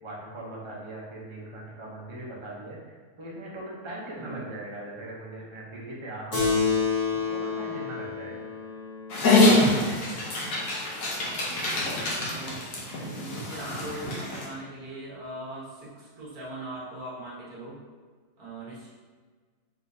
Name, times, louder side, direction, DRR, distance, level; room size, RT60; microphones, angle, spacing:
voice 1, 0.0-6.5 7.1-8.5, right 1 dB, 40° right, -4 dB, 0.4 m, -40 dB
Keyboard (musical), 6.3-11.2, left 4 dB, 25° left, 1.1 m, -30 dB
Dog, 9.1-14.5, left 2 dB, 60° left, 1.3 m, -25 dB
voice 2, 11.2-17.8 18.4-18.9, right 2 dB, 65° right, -6 dB, 1.7 m, -41 dB
4.4 x 3.7 x 2.7 m, 1.5 s
omnidirectional pair, 1.8 m